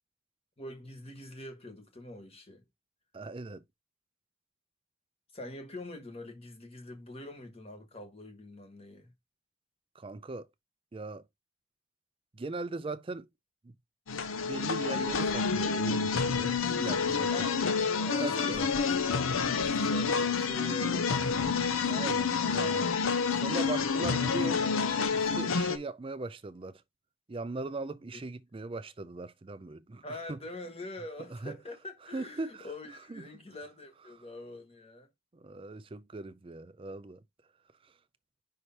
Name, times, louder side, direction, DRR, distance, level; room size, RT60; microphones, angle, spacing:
voice 1, 0.6-2.6 5.3-9.1 17.3-21.4 28.1-28.3 30.0-35.1, left 1 dB, 30° left, 1.4 m, -44 dB
voice 2, 3.1-3.6 10.0-10.5 10.9-11.2 12.3-13.3 13.6-13.7 14.4-17.3 18.2-18.6 21.9-22.9 23.3-24.7 25.1-26.8 27.3-30.4 31.3-31.6 32.1-32.7 33.1-33.2 34.2-34.3 35.3-37.2, right 3 dB, 25° right, 0.4 m, -39 dB
sound 1, 14.1-25.8, left 5 dB, 75° left, 0.7 m, -29 dB
5.6 x 3.2 x 5.6 m
head